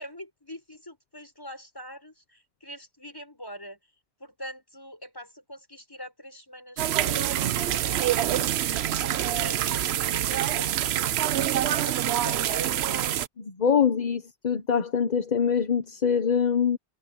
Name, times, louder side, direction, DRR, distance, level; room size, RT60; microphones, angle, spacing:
voice 1, 0.0-3.8 4.2-8.6 9.0-13.1, equal, 20° left, 6.1 m, -43 dB
sound 1, 6.8-13.3, right 11 dB, 70° right, 0.9 m, -26 dB
voice 2, 13.6-16.8, left 7 dB, 40° left, 1.0 m, -24 dB
omnidirectional pair, 1.1 m